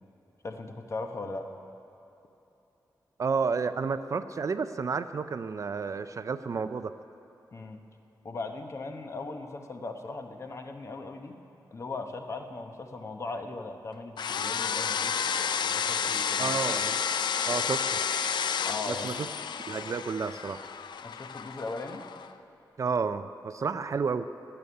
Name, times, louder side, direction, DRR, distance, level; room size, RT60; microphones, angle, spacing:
voice 1, 0.4-1.5 7.5-7.8 8.2-11.4 11.7-16.6 18.7-19.2 21.0-22.0, left 3 dB, 40° left, 5 dB, 0.9 m, -39 dB
voice 2, 3.2-6.9 16.4-17.0 17.5-18.0 18.9-19.3 19.7-20.6 22.8-24.2, right 5 dB, 45° right, 11 dB, 0.4 m, -31 dB
sound 1, 14.2-22.3, left 7 dB, 80° left, 0.4 m, -31 dB
17.0 x 7.0 x 9.9 m, 2.9 s
wide cardioid pair, 175°, 8 cm